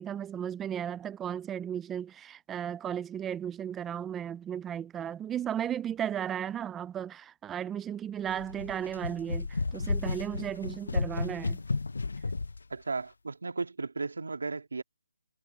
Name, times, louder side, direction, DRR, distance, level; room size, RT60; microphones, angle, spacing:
voice 1, 0.0-11.6, right 9 dB, 5° right, 0.4 m, -35 dB
sound 1, 8.3-12.6, left 3 dB, 70° left, 0.6 m, -33 dB
voice 2, 12.7-14.8, right 4 dB, 70° right, 2.3 m, -35 dB
hypercardioid pair, 180°, 0 cm